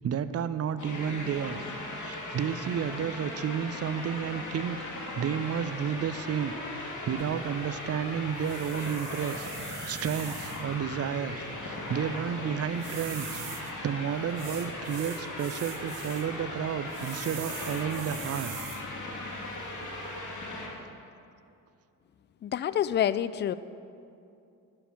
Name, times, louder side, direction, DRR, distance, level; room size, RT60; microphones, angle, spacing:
voice 1, 0.0-1.7 2.0-4.8 5.1-9.5 9.9-18.5, right 8 dB, 35° right, 13 dB, 0.6 m, -32 dB
sound 1, 0.8-20.7, left 2 dB, 45° left, 2.7 m, -38 dB
sound 2, 7.2-20.2, right 10 dB, 60° right, 0.9 m, -46 dB
voice 2, 22.4-23.5, left 10 dB, 30° left, 15 dB, 0.3 m, -27 dB
9.8 x 5.8 x 7.2 m, 2.5 s
hypercardioid pair, 50°, 42 cm